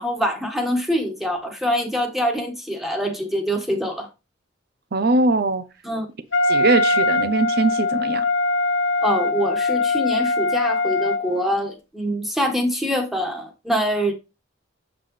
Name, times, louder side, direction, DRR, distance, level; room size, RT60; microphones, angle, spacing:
voice 1, 0.0-4.1 5.8-6.1 9.0-14.1, equal, ahead, 1.5 m, -24 dB
voice 2, 4.9-5.6 6.5-8.2, right 3 dB, 55° right, 0.7 m, -21 dB
Wind instrument woodwind instrument, 6.3-11.6, left 3 dB, 85° left, 1.5 m, -22 dB
7.6 x 6.0 x 3.2 m
head